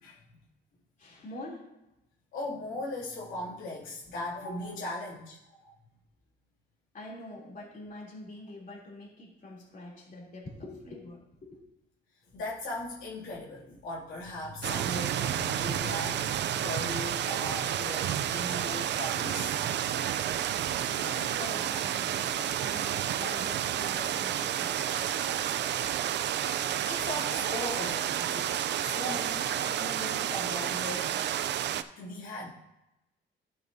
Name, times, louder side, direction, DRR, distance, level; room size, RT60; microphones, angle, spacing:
voice 1, 1.0-1.7 6.9-11.6 20.8-25.1, left 2 dB, 40° left, -4 dB, 3.1 m, -45 dB
voice 2, 2.3-5.4 5.6-5.7 12.3-19.8 20.1-20.2 24.8-25.1 26.0-31.2 32.0-32.5, left 1 dB, 85° left, -7 dB, 2.6 m, -39 dB
sound 1, 14.6-31.8, right 10 dB, 60° right, 0.5 m, -30 dB
11.5 x 6.7 x 2.7 m, 0.94 s
cardioid pair, 90°, 20 cm